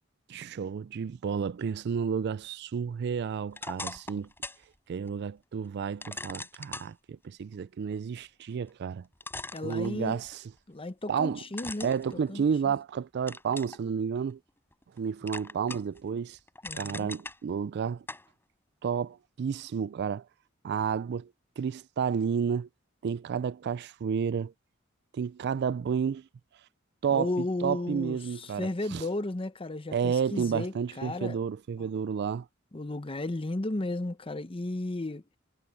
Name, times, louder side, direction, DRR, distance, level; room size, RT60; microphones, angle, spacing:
voice 1, 0.3-4.3 4.9-9.0 9.6-10.4 11.1-11.4 11.8-14.4 15.0-16.4 16.7-18.0 18.8-20.2 20.6-21.3 21.6-22.7 23.0-24.5 25.1-26.2 27.0-29.1 29.9-32.5, right 7 dB, 55° right, 0.3 m, -31 dB
sound 1, 3.5-4.6 5.1-5.2 6.0-6.9 8.7-8.8 9.2-10.3 11.5-12.8 13.3-13.8 14.3-15.0 15.3-16.0 16.3-17.4 18.1-18.3, left 2 dB, 10° left, 4.4 m, -40 dB
voice 2, 9.5-10.2 10.7-11.9 12.3-12.4 16.6-17.1 27.1-31.4 31.8-31.9 32.7-35.2, left 2 dB, 25° left, 0.8 m, -34 dB
head